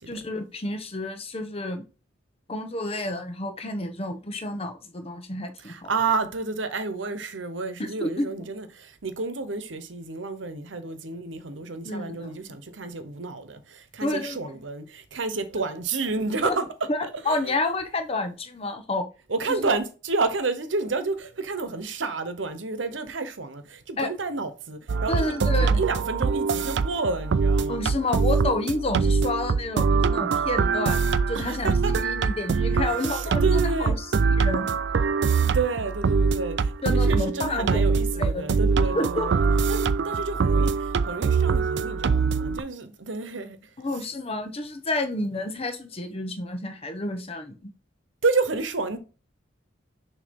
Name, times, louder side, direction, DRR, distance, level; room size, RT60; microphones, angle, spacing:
voice 1, 0.1-1.8 2.5-5.9 7.8-8.3 11.8-12.6 14.0-14.5 16.4-16.6 16.9-19.1 19.5-19.8 24.0-24.1 25.1-25.8 27.7-31.0 31.3-34.1 34.4-34.7 36.8-39.7 43.8-47.7, left 2 dB, 30° left, 1.0 m, -30 dB
voice 2, 5.7-16.7 17.0-17.4 19.3-27.8 31.3-31.9 33.0-34.0 35.4-39.4 39.7-43.6 48.2-49.0, right 3 dB, 80° right, 1.0 m, -30 dB
sound 1, 24.9-42.6, right 5 dB, 65° right, 0.4 m, -23 dB
6.7 x 3.0 x 5.3 m
head